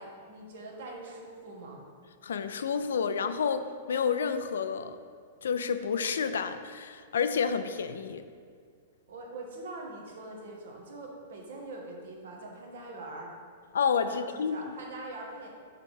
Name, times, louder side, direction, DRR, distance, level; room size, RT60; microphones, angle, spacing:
voice 1, 0.0-1.9 9.1-13.3 14.0-15.5, right 2 dB, 75° right, 0 dB, 1.3 m, -43 dB
voice 2, 2.2-5.0 5.4-8.2 13.7-14.6, left 6 dB, 85° left, 10 dB, 0.4 m, -29 dB
5.7 x 3.4 x 5.5 m, 2.1 s
hypercardioid pair, 130°, 0 cm